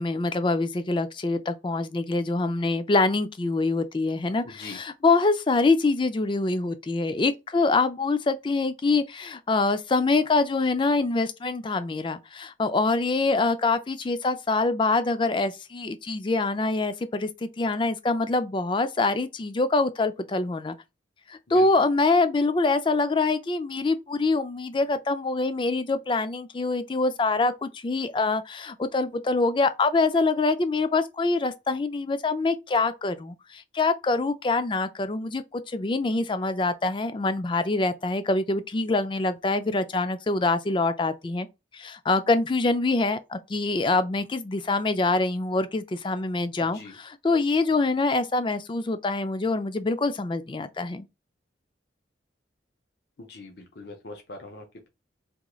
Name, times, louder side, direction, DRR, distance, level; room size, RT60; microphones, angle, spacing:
voice 1, 0.0-20.7 21.3-41.5 41.7-51.1, left 3 dB, 25° left, 0.3 m, -25 dB
voice 2, 4.4-4.8 21.5-21.7 46.6-46.9 53.3-54.9, left 2 dB, 60° left, 0.7 m, -42 dB
3.6 x 3.0 x 2.3 m
head